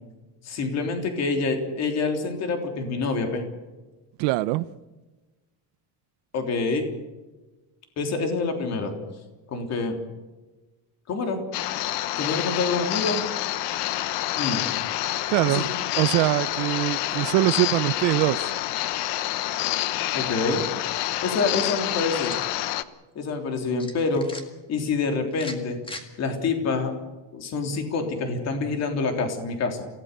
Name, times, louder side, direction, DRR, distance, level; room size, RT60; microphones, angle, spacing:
voice 1, 0.4-3.5 6.3-6.8 8.0-8.9 9.5-10.0 11.1-11.4 12.2-13.2 14.4-14.6 15.5-15.7 20.1-20.6 21.2-22.4 23.2-24.3 24.7-25.8 26.2-26.9 27.3-29.9, left 4 dB, 35° left, 3.5 m, -26 dB
voice 2, 4.2-4.8 15.3-15.6 16.0-18.5, right 18 dB, 75° right, 1.0 m, -23 dB
sound 1, 11.5-22.8, left 14 dB, 65° left, 1.2 m, -28 dB
sound 2, 21.6-22.5 23.8-24.4 25.3-26.0, left 2 dB, 10° left, 2.0 m, -40 dB
28.0 x 17.5 x 6.9 m
cardioid pair, 180°, 44 cm